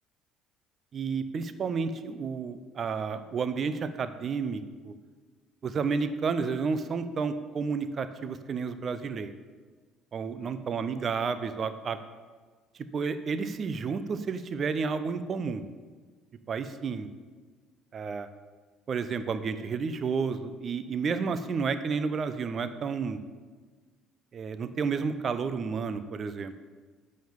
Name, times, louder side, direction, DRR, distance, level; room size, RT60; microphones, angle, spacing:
voice 1, 0.9-4.9 5.6-9.3 10.1-12.0 12.9-15.6 16.5-17.1 17.9-18.3 18.9-23.2 24.3-26.6, right 5 dB, 40° right, 11 dB, 0.7 m, -31 dB
9.3 x 6.5 x 7.1 m, 1.4 s
figure-of-eight pair, 55°, 0 cm